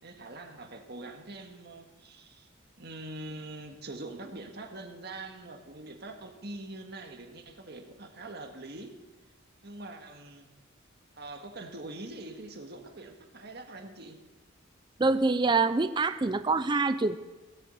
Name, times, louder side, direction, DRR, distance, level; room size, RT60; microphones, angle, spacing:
voice 1, 0.0-2.5 2.8-8.9 9.6-10.5 11.2-14.2, right 2 dB, 55° right, 4 dB, 1.8 m, -43 dB
voice 2, 15.0-17.2, right 3 dB, 25° right, 11 dB, 0.5 m, -25 dB
17.5 x 7.5 x 7.8 m, 1.2 s
head